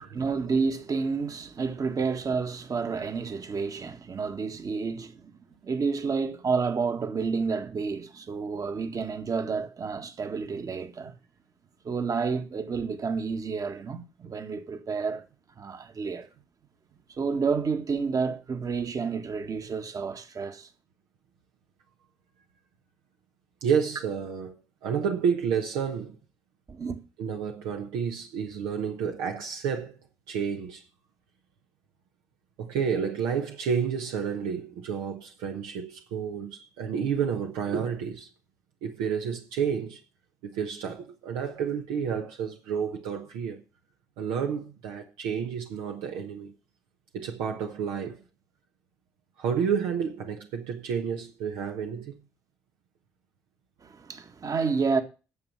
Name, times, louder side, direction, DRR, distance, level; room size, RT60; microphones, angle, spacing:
voice 1, 0.0-5.3 5.6-11.1 11.8-15.2 15.6-16.3 17.1-20.7 26.7-27.0 53.8-55.0, right 5 dB, 45° right, 1.7 m, -30 dB
voice 2, 23.6-24.5 24.8-26.2 27.2-29.9 30.3-30.8 32.6-38.3 38.8-40.0 40.4-43.6 44.2-46.5 47.1-48.2 49.4-52.2, right 7 dB, 75° right, 1.1 m, -30 dB
9.6 x 7.4 x 5.9 m
hypercardioid pair, 45°, 8 cm